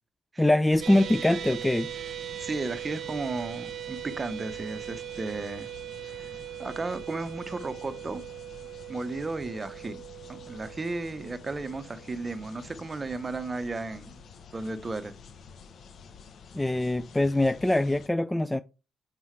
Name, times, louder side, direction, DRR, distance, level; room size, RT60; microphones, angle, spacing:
voice 1, 0.4-1.9 16.5-18.6, left 1 dB, 10° left, 0.4 m, -23 dB
sound 1, 0.7-18.1, left 6 dB, 60° left, 0.9 m, -49 dB
sound 2, 0.8-13.1, right 12 dB, 65° right, 0.9 m, -40 dB
voice 2, 2.4-5.7 6.1-6.3 6.6-8.2 8.9-10.0 10.3-14.2 14.5-15.1, right 3 dB, 25° right, 0.9 m, -34 dB
7.4 x 5.4 x 3.2 m
cardioid pair, 90°, 0 cm